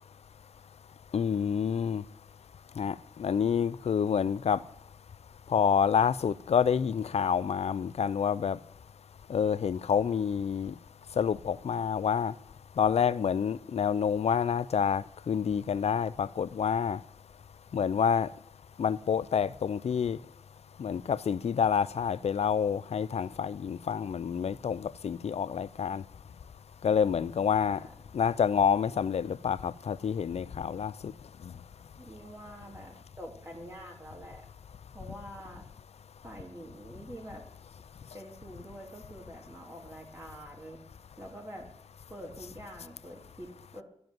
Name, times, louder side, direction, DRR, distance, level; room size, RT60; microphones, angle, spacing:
voice 1, 1.1-2.0 2.8-4.6 5.5-8.6 9.3-10.7 11.2-12.3 12.8-17.0 17.7-18.3 18.8-20.2 20.8-26.0 26.8-27.8 28.1-31.1, left 7 dB, 80° left, 0.5 m, -28 dB
voice 2, 32.0-34.4 34.9-35.7 36.2-37.4 38.1-40.8 41.2-41.7 42.1-43.8, equal, 25° right, 3.1 m, -46 dB
12.0 x 7.8 x 9.3 m
wide cardioid pair, 95°, 11 cm